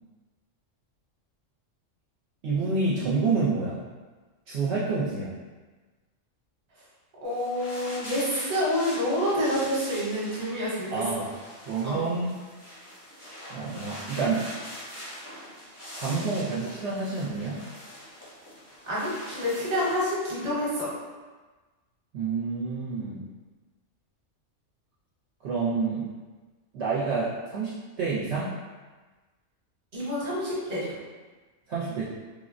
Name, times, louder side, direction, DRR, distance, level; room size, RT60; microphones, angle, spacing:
voice 1, 2.4-3.8 4.5-5.3 10.9-11.2 11.7-12.3 13.5-14.5 16.0-17.6 22.1-23.2 25.4-26.1 26.7-28.5 31.7-32.0, right 4 dB, 65° right, -8 dB, 0.8 m, -28 dB
sound 1, 7.2-20.4, equal, 20° left, 0.4 m, -43 dB
voice 2, 7.2-11.3 11.8-12.1 18.8-20.9 29.9-31.0, equal, 35° right, -7 dB, 0.9 m, -28 dB
3.4 x 2.1 x 2.5 m, 1.3 s
omnidirectional pair, 1.3 m